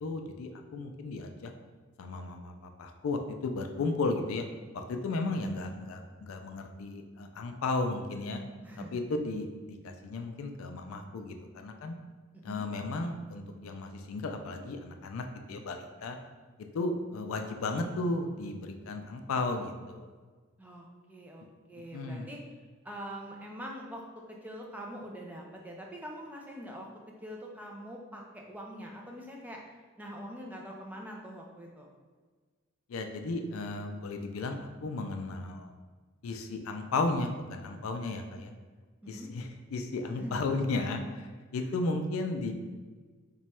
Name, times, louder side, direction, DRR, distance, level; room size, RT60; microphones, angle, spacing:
voice 1, 0.0-1.5 2.0-4.4 4.7-8.4 8.9-12.0 12.4-16.2 16.6-20.1 21.9-22.3 32.9-35.7 36.2-38.5 39.1-42.5, left 3 dB, 70° left, 5 dB, 0.4 m, -34 dB
voice 2, 8.6-9.0 12.4-12.7 20.6-22.4 22.8-26.9 27.2-29.7 30.0-31.9 39.1-39.3 40.1-40.3 41.6-41.7, equal, 5° right, -1 dB, 0.3 m, -44 dB
3.0 x 2.3 x 4.2 m, 1.4 s
head